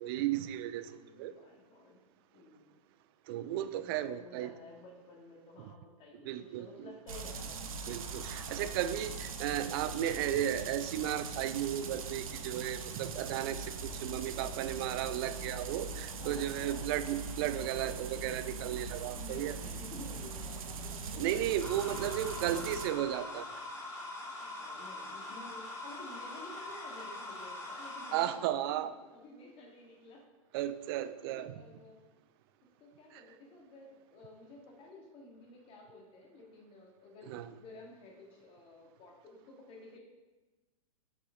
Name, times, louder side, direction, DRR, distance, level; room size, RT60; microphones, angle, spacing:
voice 1, 0.0-0.9 1.2-1.3 3.3-4.5 6.3-6.9 7.9-19.6 21.2-23.5 28.1-28.9 30.5-31.8 33.1-33.2 37.3-37.5, right 12 dB, 40° right, 12 dB, 0.4 m, -34 dB
voice 2, 0.9-2.0 2.3-2.8 3.8-7.7 15.8-16.9 19.2-21.4 21.8-22.9 24.4-30.2 31.3-32.1 32.8-40.0, left 2 dB, 30° left, 0 dB, 1.8 m, -53 dB
sound 1, 7.1-22.9, right 4 dB, 70° right, 0.8 m, -41 dB
sound 2, 21.6-28.3, left 2 dB, 15° left, 1.6 m, -43 dB
7.0 x 5.9 x 3.6 m, 1.2 s
hypercardioid pair, 115°, 18 cm